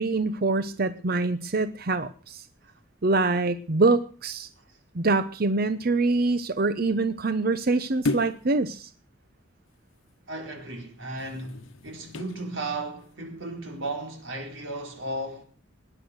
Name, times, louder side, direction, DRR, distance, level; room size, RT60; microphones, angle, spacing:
voice 1, 0.0-2.4 3.0-4.5 4.9-8.9, right 3 dB, 50° right, 0.7 m, -25 dB
sound 1, 8.0-8.5 11.1-12.4 13.0-13.1, left 2 dB, 85° left, 1.1 m, -32 dB
voice 2, 10.3-15.4, right 2 dB, 70° right, 4.5 m, -35 dB
19.5 x 9.9 x 6.4 m
head